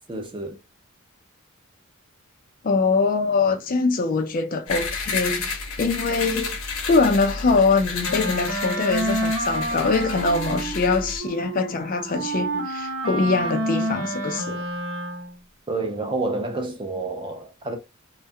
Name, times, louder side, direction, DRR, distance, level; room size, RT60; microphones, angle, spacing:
voice 1, 0.1-0.6 15.7-17.8, right 2 dB, 20° right, 0.5 m, -29 dB
voice 2, 2.6-6.6 6.8-14.6, left 4 dB, 40° left, 0.3 m, -23 dB
sound 1, 4.7-11.2, left 4 dB, 70° left, 0.8 m, -31 dB
Wind instrument woodwind instrument, 8.0-15.4, right 1 dB, 65° right, 0.8 m, -29 dB
2.3 x 2.1 x 2.6 m
head